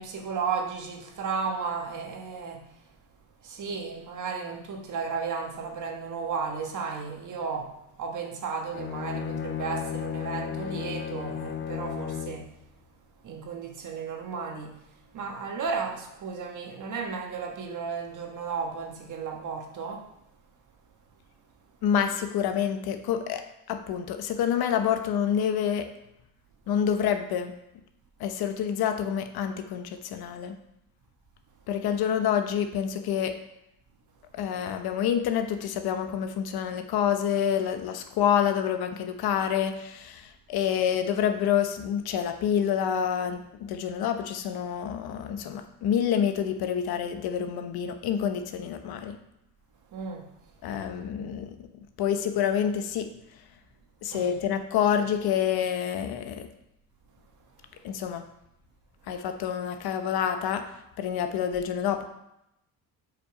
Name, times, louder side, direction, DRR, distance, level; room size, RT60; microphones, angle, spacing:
voice 1, 0.0-2.6 3.4-12.5 13.2-14.8 15.1-20.1 49.9-50.3 54.1-54.3, right 5 dB, 50° right, 1.5 m, -34 dB
Bowed string instrument, 8.7-12.5, left 8 dB, 30° left, 0.4 m, -34 dB
voice 2, 21.8-25.9 26.7-27.5 28.2-30.5 31.7-33.3 34.4-49.2 50.6-51.6 52.0-53.1 54.0-56.5 57.8-58.2 59.1-60.7 61.0-62.1, left 8 dB, 65° left, 1.0 m, -27 dB
7.8 x 5.4 x 4.9 m
cardioid pair, 115°, 39 cm